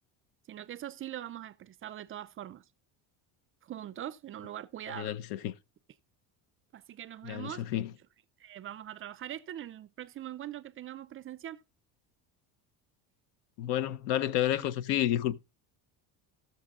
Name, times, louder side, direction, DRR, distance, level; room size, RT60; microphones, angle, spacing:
voice 1, 0.5-2.6 3.6-5.2 6.7-7.8 8.4-11.6 14.5-14.6, right 12 dB, 35° right, 0.4 m, -42 dB
voice 2, 4.9-5.5 7.2-7.9 13.6-15.4, left 12 dB, 80° left, 0.8 m, -30 dB
18.5 x 6.6 x 2.4 m
cardioid pair, 125°, 42 cm